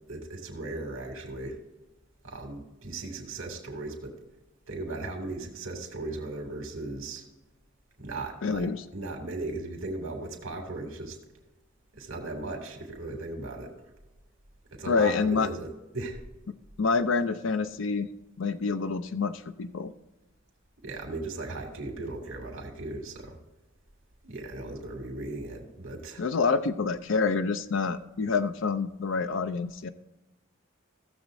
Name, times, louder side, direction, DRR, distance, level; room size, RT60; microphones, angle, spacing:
voice 1, 0.1-1.6 2.2-4.2 4.7-7.2 8.0-11.2 11.9-13.7 14.7-16.2 20.8-23.3 24.2-26.2, right 2 dB, 80° right, 2 dB, 2.5 m, -37 dB
voice 2, 8.4-8.8 14.9-15.5 16.8-18.1 18.4-19.9 26.2-29.9, left 4 dB, 65° left, 10 dB, 0.5 m, -27 dB
16.0 x 7.2 x 2.6 m, 1.0 s
head